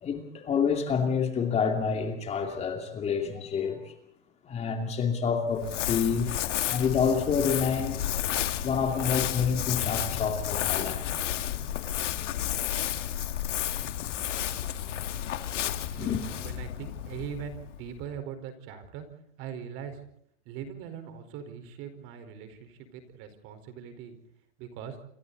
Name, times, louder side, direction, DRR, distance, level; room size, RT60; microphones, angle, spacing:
voice 1, 0.0-3.9 4.5-6.4 6.7-8.1 8.6-11.0 16.0-16.2, left 6 dB, 20° left, 2.7 m, -28 dB
Crumpling crinkling, 5.5-18.0, left 11 dB, 90° left, 2.4 m, -32 dB
voice 2, 15.9-19.1 19.4-20.0 20.4-24.2 24.6-25.0, right 8 dB, 40° right, 4.6 m, -41 dB
28.5 x 25.0 x 4.1 m
supercardioid pair, 160°, 35 cm